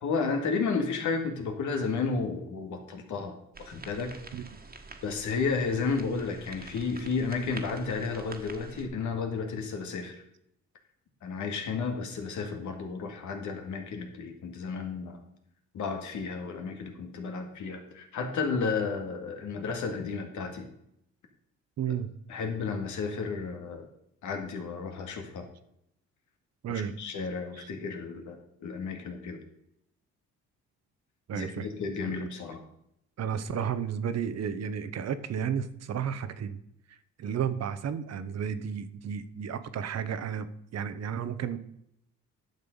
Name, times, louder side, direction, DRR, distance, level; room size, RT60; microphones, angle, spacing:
voice 1, 0.0-4.2 5.0-10.2 11.2-15.2 15.7-20.7 22.3-23.9 24.2-25.5 26.7-29.4 31.3-32.6, left 4 dB, 75° left, 5 dB, 2.1 m, -32 dB
sound 1, 3.5-8.9, right 3 dB, 30° right, 1.6 m, -47 dB
voice 2, 21.8-22.1 26.6-26.9 27.5-27.7 31.3-31.7 32.1-32.3 33.2-36.6 36.9-40.5 40.7-41.6, right 8 dB, 60° right, 12 dB, 1.0 m, -32 dB
10.5 x 6.7 x 5.3 m, 0.77 s
cardioid pair, 90°, 30 cm